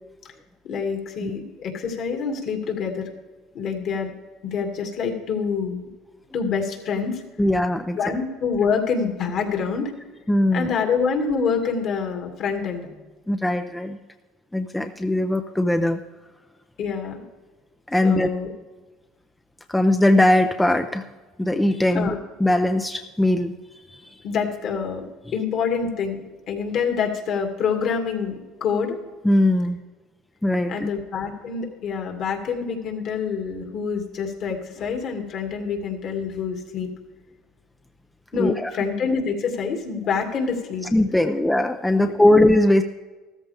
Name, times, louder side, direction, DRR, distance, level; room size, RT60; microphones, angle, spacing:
voice 1, 0.6-3.1 3.5-4.1 4.4-5.9 6.3-7.2 7.9-9.9 10.5-12.9 16.8-17.2 18.0-18.5 21.9-22.2 24.2-25.0 25.3-26.2 26.5-29.0 30.7-36.9 38.3-40.9 42.0-42.4, left 6 dB, 55° left, 3 dB, 2.3 m, -26 dB
voice 2, 7.4-8.2 10.3-10.7 13.3-14.0 14.5-16.0 17.9-18.3 19.7-21.0 21.4-24.2 29.2-29.8 30.4-30.9 38.3-38.7 40.9-42.8, left 1 dB, 5° left, 6 dB, 0.6 m, -20 dB
14.5 x 13.5 x 3.5 m, 1.2 s
supercardioid pair, 100°, 0 cm